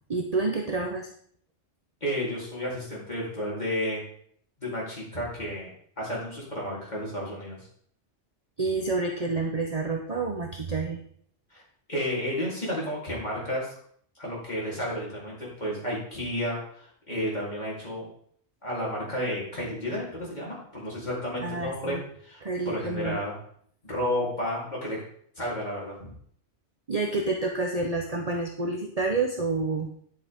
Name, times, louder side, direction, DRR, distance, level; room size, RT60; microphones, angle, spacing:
voice 1, 0.1-1.1 8.6-11.0 21.4-22.0 22.4-23.2 26.9-29.9, right 3 dB, 35° right, 1 dB, 1.0 m, -28 dB
voice 2, 2.0-4.0 4.6-5.7 6.0-7.6 11.5-11.6 11.9-13.7 14.2-18.1 18.6-23.4 23.8-25.0 25.4-26.1, equal, 35° left, -6 dB, 3.9 m, -32 dB
11.0 x 7.7 x 3.7 m, 0.62 s
omnidirectional pair, 1.2 m